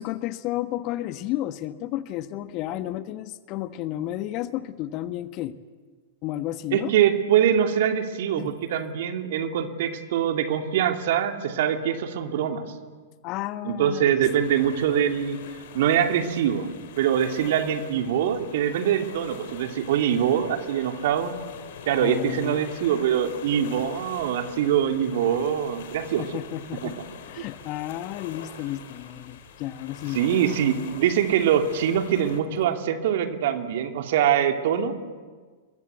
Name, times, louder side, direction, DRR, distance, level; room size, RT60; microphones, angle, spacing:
voice 1, 0.0-5.6 6.2-6.9 8.4-8.6 13.2-14.3 22.0-22.6 26.2-27.0 27.3-30.2, left 14 dB, 40° left, 12 dB, 1.3 m, -32 dB
voice 2, 6.7-12.6 13.6-15.4 15.7-16.7 17.0-21.3 21.9-26.2 26.8-26.9 30.1-34.9, right 9 dB, 55° right, 5 dB, 2.8 m, -23 dB
sound 1, 14.2-32.4, left 7 dB, 60° left, 3.9 m, -44 dB
29.5 x 22.5 x 8.2 m, 1.5 s
figure-of-eight pair, 100°, 0 cm